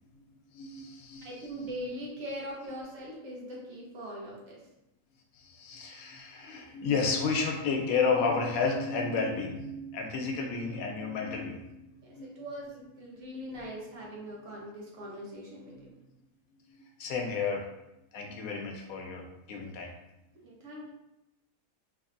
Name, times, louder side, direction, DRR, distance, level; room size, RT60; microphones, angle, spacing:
voice 1, 0.5-1.5 5.3-11.8 12.1-12.4 13.1-13.3 16.7-17.6 18.1-19.9, left 4 dB, 80° left, 1 dB, 1.0 m, -32 dB
voice 2, 1.2-4.6 12.0-16.0 20.4-20.9, equal, 65° right, -3 dB, 1.1 m, -41 dB
3.2 x 2.6 x 2.5 m, 0.92 s
omnidirectional pair, 1.5 m